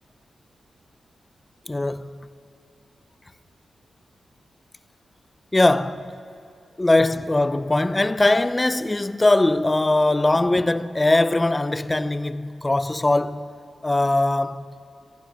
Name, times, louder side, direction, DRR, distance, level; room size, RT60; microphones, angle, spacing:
voice 1, 1.7-2.3 5.5-6.1 6.8-13.5 13.8-14.7, left 2 dB, 15° left, 0.6 m, -21 dB
27.0 x 14.5 x 9.7 m
wide cardioid pair, 160°, 0 cm